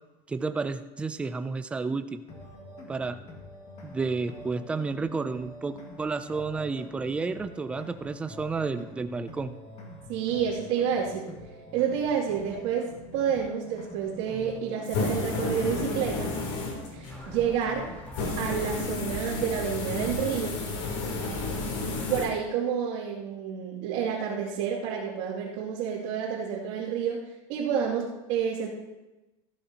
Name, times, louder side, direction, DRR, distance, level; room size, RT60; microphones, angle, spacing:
voice 1, 0.3-2.2 2.9-3.2 3.8-9.5, right 4 dB, 5° right, 10 dB, 0.3 m, -31 dB
sound 1, 2.3-18.3, left 2 dB, 35° left, 2.0 m, -46 dB
voice 2, 10.1-11.4 11.7-16.3 16.9-18.0 18.4-20.7 21.4-21.6 22.1-28.7, right 7 dB, 55° right, -8 dB, 2.6 m, -29 dB
sound 2, 14.8-17.2 18.1-22.3, left 3 dB, 80° left, 3.4 m, -31 dB
sound 3, 17.1-22.2, left 1 dB, 10° left, 2.4 m, -44 dB
15.0 x 12.0 x 2.9 m, 1.1 s
supercardioid pair, 170°, 17 cm